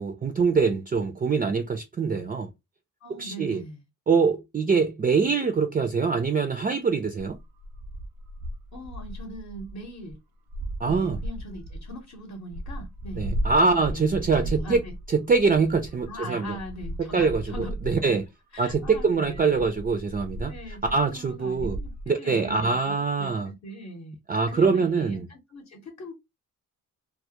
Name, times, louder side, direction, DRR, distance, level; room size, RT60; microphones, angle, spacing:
voice 1, 0.0-2.5 3.2-3.6 4.1-7.3 10.8-11.2 13.2-14.8 15.1-16.6 17.0-18.2 18.6-20.5 20.9-21.8 22.1-23.5 24.3-25.3, right 4 dB, 25° right, 0.4 m, -24 dB
voice 2, 3.0-3.8 8.7-10.2 10.9-13.2 13.7-14.9 16.1-18.0 18.5-19.7 20.5-20.8 21.1-24.2 24.5-26.1, equal, 45° left, 0.8 m, -41 dB
sound 1, 7.2-10.1 10.5-12.0 12.3-16.2 16.4-18.2 18.7-22.1, equal, 85° right, 0.5 m, -36 dB
2.2 x 2.0 x 2.8 m
cardioid pair, 80°, 35 cm